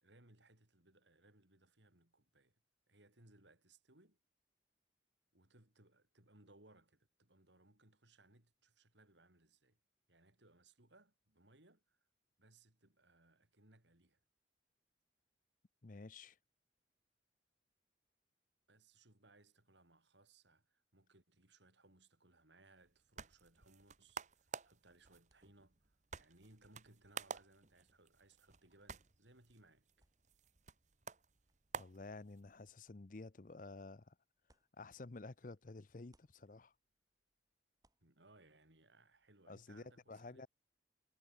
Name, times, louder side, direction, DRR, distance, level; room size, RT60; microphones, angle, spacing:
voice 1, 0.0-2.6 2.9-4.2 5.3-9.8 10.1-12.0 12.4-14.2 18.7-29.9 38.0-40.5, right 2 dB, 75° right, 5.2 m, -67 dB
voice 2, 15.8-16.4 31.8-34.2 34.8-36.7 39.5-40.5, left 3 dB, 45° left, 0.7 m, -52 dB
sound 1, 22.8-32.7, right 5 dB, 40° right, 1.1 m, -52 dB
sound 2, 29.8-35.6 35.9-39.3, right 1 dB, 20° right, 4.6 m, -84 dB
head